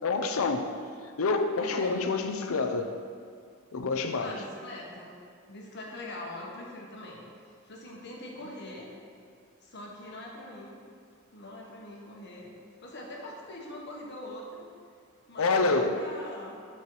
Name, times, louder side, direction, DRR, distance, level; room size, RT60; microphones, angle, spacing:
voice 1, 0.0-0.7 1.2-2.9 3.7-4.3 15.4-16.0, left 3 dB, 75° left, 7 dB, 0.6 m, -27 dB
voice 2, 1.6-2.1 4.2-5.2 5.5-7.2 7.6-8.9 9.6-10.8 11.3-12.5 12.8-14.6 15.3-16.6, left 1 dB, 55° left, -2 dB, 1.3 m, -42 dB
8.3 x 4.5 x 4.8 m, 2.2 s
head